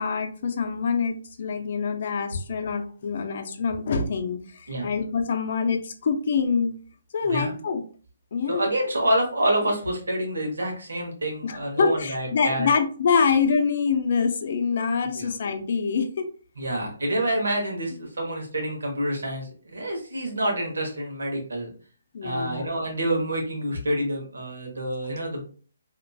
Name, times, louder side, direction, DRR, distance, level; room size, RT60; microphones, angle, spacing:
voice 1, 0.0-6.7 7.1-7.8 8.3-8.7 11.4-16.3 16.8-16.9 22.1-22.7, left 5 dB, 55° left, 6 dB, 0.5 m, -25 dB
voice 2, 7.2-7.5 8.5-12.7 15.2-15.3 16.6-21.7 22.2-25.4, right 1 dB, 90° right, 1 dB, 1.2 m, -27 dB
2.9 x 2.5 x 2.3 m, 0.40 s
hypercardioid pair, 155°, 0 cm